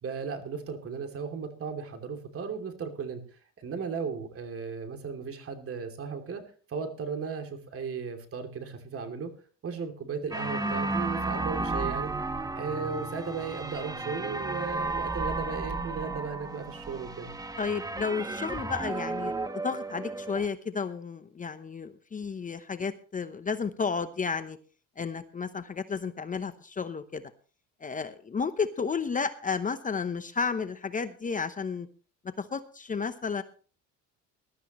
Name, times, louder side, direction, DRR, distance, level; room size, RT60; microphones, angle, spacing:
voice 1, 0.0-3.2 3.6-6.4 6.7-9.3 9.6-17.3, right 5 dB, 40° right, 6 dB, 2.8 m, -36 dB
sound 1, 10.3-20.5, right 3 dB, 10° right, 1.1 m, -33 dB
voice 2, 11.6-11.9 17.6-19.3 19.6-24.6 25.0-27.2 27.8-31.9 32.4-33.4, left 5 dB, 25° left, 11 dB, 0.9 m, -32 dB
20.5 x 12.5 x 3.1 m, 0.39 s
cardioid pair, 110°, 33 cm